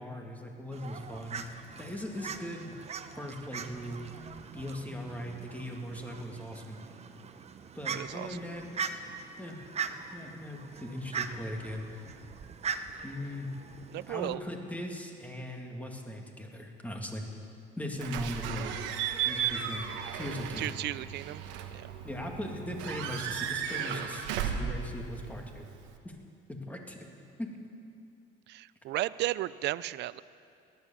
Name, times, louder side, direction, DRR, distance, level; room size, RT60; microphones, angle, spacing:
voice 1, 0.0-1.4 1.8-2.8 3.1-4.0 4.5-6.8 7.7-8.7 9.4-9.6 10.1-12.0 13.0-13.5 14.1-17.2 17.8-18.8 19.2-19.9 20.1-20.7 22.0-25.7 26.0-26.1 26.5-27.0 27.4-27.5, left 1 dB, 10° left, 1 dB, 2.3 m, -39 dB
Fowl, 0.7-14.3, right 6 dB, 35° right, 0.9 m, -41 dB
voice 2, 7.9-8.4 13.9-14.4 20.6-21.4 21.7-21.9 28.5-30.2, right 15 dB, 65° right, 17 dB, 0.5 m, -34 dB
Slam / Squeak / Alarm, 18.0-26.0, right 8 dB, 90° right, 1.2 m, -35 dB
17.0 x 11.5 x 7.1 m, 2.5 s
cardioid pair, 95°, 19 cm